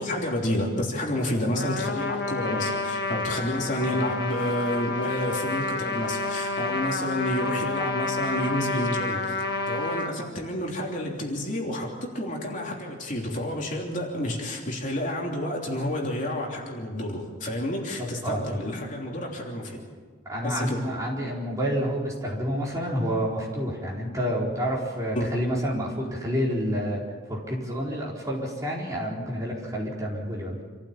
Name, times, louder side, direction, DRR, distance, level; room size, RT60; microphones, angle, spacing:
voice 1, 0.0-19.8 20.4-20.8 25.1-25.3, left 1 dB, 40° left, -1 dB, 3.3 m, -30 dB
Trumpet, 1.5-10.1, left 2 dB, 60° left, 1.5 m, -29 dB
voice 2, 18.0-18.4 20.2-27.0 27.3-30.6, equal, 15° right, -4 dB, 4.4 m, -29 dB
27.0 x 15.0 x 7.4 m, 1.5 s
head